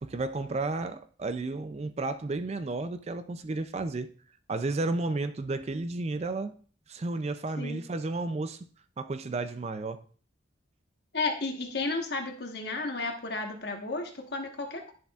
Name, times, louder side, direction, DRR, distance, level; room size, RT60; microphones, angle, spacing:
voice 1, 0.0-4.1 4.5-6.6 6.9-8.7 9.0-10.0, right 3 dB, 35° right, 0.4 m, -32 dB
voice 2, 11.1-14.9, left 3 dB, 55° left, 1.3 m, -33 dB
10.5 x 6.8 x 2.4 m
head